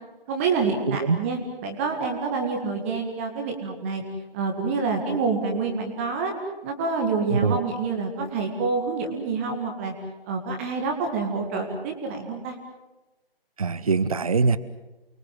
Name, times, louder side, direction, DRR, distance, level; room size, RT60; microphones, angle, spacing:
voice 1, 0.3-4.0 4.3-6.3 6.6-9.9 10.3-12.6, right 4 dB, 15° right, 3 dB, 2.0 m, -27 dB
voice 2, 0.9-1.2 7.3-7.6 13.6-14.6, right 4 dB, 35° right, 15 dB, 1.0 m, -22 dB
29.5 x 23.0 x 7.7 m, 1.1 s
figure-of-eight pair, 155°, 30 cm